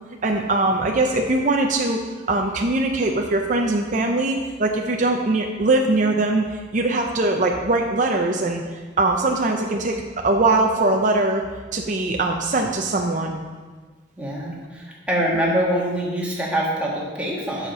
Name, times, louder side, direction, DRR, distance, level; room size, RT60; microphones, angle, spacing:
voice 1, 0.2-2.0 2.3-8.6 9.0-11.4 11.7-13.4, right 2 dB, 40° right, 2 dB, 0.6 m, -21 dB
voice 2, 14.2-17.7, equal, 5° right, -4 dB, 1.8 m, -24 dB
7.4 x 6.5 x 5.4 m, 1.4 s
head